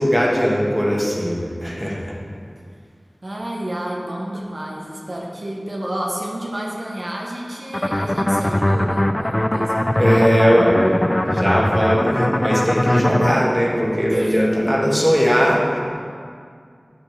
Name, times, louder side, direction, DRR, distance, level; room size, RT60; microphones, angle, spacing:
voice 1, 0.0-2.1 10.0-15.8, equal, ahead, -4 dB, 1.5 m, -19 dB
voice 2, 3.2-10.3 14.1-14.4, right 1 dB, 60° right, -2 dB, 0.9 m, -30 dB
sound 1, 7.7-13.4, left 1 dB, 25° left, 0.3 m, -20 dB
8.8 x 8.1 x 3.2 m, 2.2 s
wide cardioid pair, 55°, 0 cm